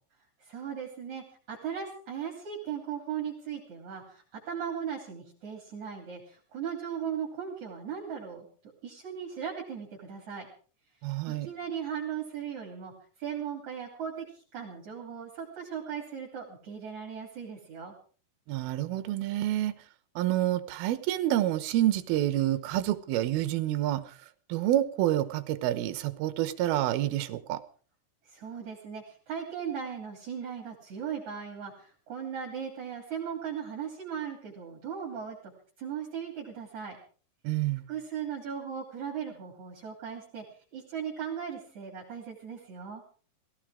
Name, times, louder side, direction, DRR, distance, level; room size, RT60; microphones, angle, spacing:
voice 1, 0.4-8.5 8.8-10.5 11.4-12.9 13.2-17.9 28.2-35.5 35.8-37.0 37.9-40.4 40.7-43.0, right 8 dB, 45° right, -1 dB, 4.1 m, -37 dB
voice 2, 11.0-11.5 18.5-19.7 20.2-24.0 24.5-27.6 37.4-37.9, right 13 dB, 70° right, 12 dB, 2.8 m, -28 dB
17.5 x 16.5 x 4.9 m, 0.42 s
omnidirectional pair, 4.9 m